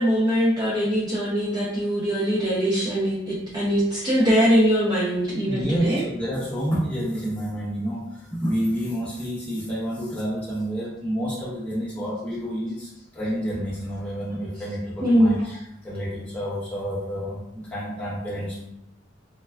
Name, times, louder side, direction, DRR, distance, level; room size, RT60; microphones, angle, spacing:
voice 1, 0.0-6.0 15.0-15.3, equal, 20° right, -7 dB, 0.4 m, -22 dB
voice 2, 5.5-18.7, equal, 5° left, -9 dB, 1.0 m, -29 dB
3.3 x 2.1 x 2.3 m, 0.80 s
head